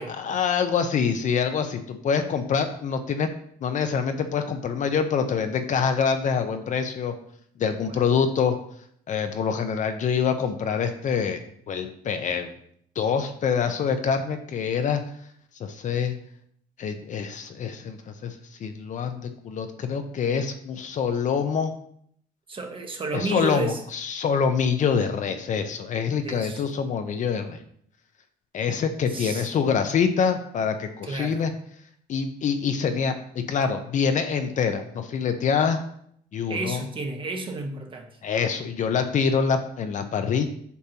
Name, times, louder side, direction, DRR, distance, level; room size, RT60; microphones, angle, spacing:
voice 1, 0.0-3.3 3.6-7.1 7.6-8.6 9.1-11.4 11.7-12.5 13.0-15.0 15.6-16.1 16.8-21.7 23.1-27.6 28.5-31.5 32.1-33.1 33.5-35.8 36.3-36.8 38.2-40.5, left 6 dB, 50° left, 7 dB, 0.7 m, -25 dB
voice 2, 22.5-23.8 26.2-26.6 29.1-29.5 31.0-31.4 36.5-38.2, right 3 dB, 30° right, 3 dB, 1.2 m, -31 dB
8.2 x 5.5 x 2.9 m, 0.65 s
cardioid pair, 110°, 17 cm